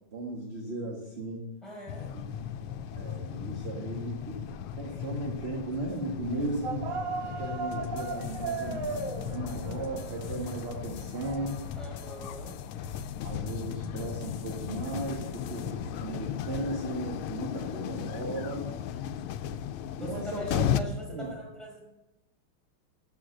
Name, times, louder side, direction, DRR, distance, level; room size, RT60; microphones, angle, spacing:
voice 1, 0.1-1.5 2.1-2.5 3.0-4.5 4.7-6.9 7.2-11.6 13.2-18.7 20.0-20.6 21.1-21.3, right 2 dB, 35° right, 0 dB, 1.5 m, -36 dB
voice 2, 1.6-2.1 11.8-12.5 20.0-21.8, equal, ahead, -3 dB, 5.1 m, -42 dB
sound 1, 1.9-20.8, left 9 dB, 85° left, 1.5 m, -36 dB
sound 2, 6.6-12.5, right 4 dB, 50° right, 1.4 m, -37 dB
sound 3, 7.7-15.7, left 8 dB, 70° left, 1.0 m, -46 dB
13.0 x 6.4 x 7.7 m, 0.96 s
omnidirectional pair, 2.3 m